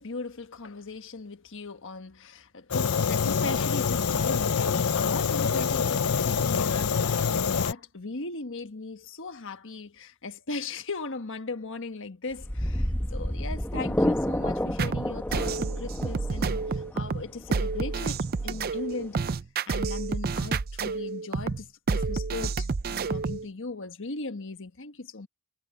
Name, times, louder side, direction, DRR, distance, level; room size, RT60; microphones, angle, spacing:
voice 1, 0.0-19.2 19.7-25.3, left 3 dB, 60° left, 1.4 m, -38 dB
Fire, 2.7-7.7, left 6 dB, 75° left, 0.7 m, -25 dB
sound 1, 12.3-19.2, equal, 10° left, 1.2 m, -30 dB
sound 2, 14.8-23.5, right 4 dB, 40° right, 0.5 m, -29 dB
head